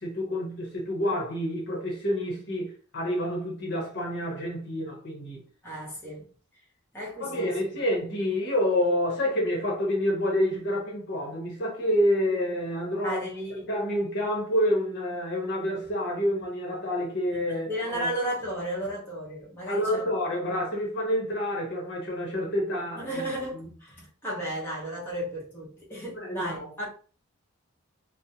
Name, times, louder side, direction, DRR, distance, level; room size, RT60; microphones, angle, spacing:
voice 1, 0.0-5.4 7.2-13.2 13.6-18.1 19.7-23.2 23.5-23.7 26.1-26.7, equal, 50° left, 0.8 m, -28 dB
voice 2, 5.6-6.3 6.9-7.6 13.0-13.7 17.5-20.1 23.0-26.9, right 1 dB, 10° left, 0.8 m, -34 dB
2.4 x 2.0 x 2.7 m
head